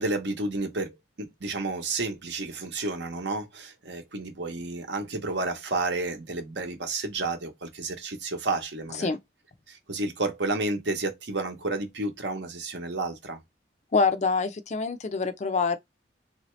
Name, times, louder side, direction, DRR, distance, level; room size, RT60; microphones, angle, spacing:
voice 1, 0.0-9.1 9.7-13.4, right 2 dB, 65° right, 0.9 m, -31 dB
voice 2, 13.9-15.8, left 4 dB, 35° left, 0.4 m, -25 dB
3.3 x 2.7 x 3.1 m
head